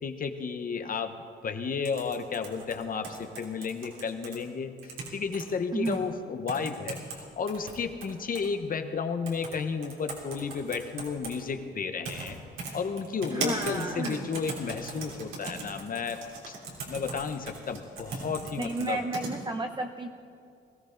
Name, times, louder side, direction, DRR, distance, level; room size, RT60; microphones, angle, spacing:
voice 1, 0.0-1.1 1.4-12.4 12.7-16.2 16.5-16.6 16.9-19.0, left 5 dB, 45° left, 8 dB, 1.1 m, -33 dB
sound 1, 1.8-4.4 4.8-5.4 5.9-6.0 6.5-7.2 7.5-8.5 9.3-9.6 9.8-11.4 12.0-12.3 12.6-19.3, right 3 dB, 80° right, 3.1 m, -38 dB
voice 2, 13.3-14.2 18.6-20.1, right 2 dB, 25° right, 3 dB, 0.8 m, -32 dB
20.0 x 14.0 x 3.9 m, 2.4 s
cardioid pair, 90°, 20 cm